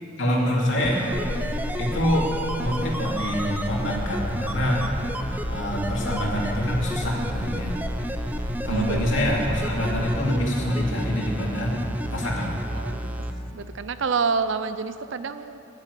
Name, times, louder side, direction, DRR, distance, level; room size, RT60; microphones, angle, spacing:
voice 1, 0.2-1.1 1.8-2.3 2.6-4.8 5.5-7.8 8.6-11.8 12.1-12.5, left 1 dB, 70° left, -3 dB, 2.6 m, -25 dB
sound 1, 0.8-13.3 13.6-13.7, right 1 dB, 10° right, 0.5 m, -31 dB
sound 2, 1.1-10.2, left 1 dB, 90° left, 0.8 m, -34 dB
voice 2, 8.7-9.4 12.7-13.2 13.5-15.6, right 5 dB, 65° right, 12 dB, 0.5 m, -28 dB
10.5 x 10.0 x 8.2 m, 2.9 s
head